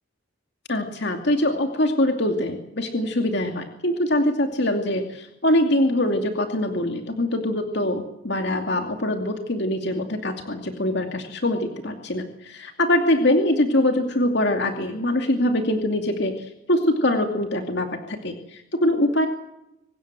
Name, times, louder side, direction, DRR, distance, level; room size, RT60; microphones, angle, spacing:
voice 1, 0.7-19.3, left 1 dB, 60° left, 4 dB, 2.6 m, -23 dB
25.5 x 20.0 x 7.6 m, 0.86 s
head